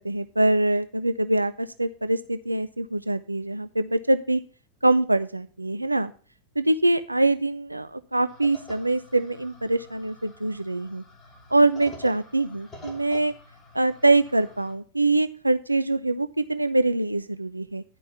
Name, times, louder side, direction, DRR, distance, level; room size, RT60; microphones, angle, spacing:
voice 1, 0.0-4.4 4.8-6.1 6.6-11.0 11.5-13.3 13.7-17.8, right 2 dB, 85° right, 12 dB, 0.4 m, -24 dB
sound 1, 8.3-14.7, left 1 dB, 20° left, 3.1 m, -48 dB
11.0 x 5.3 x 6.8 m, 0.39 s
figure-of-eight pair, 90°, 0 cm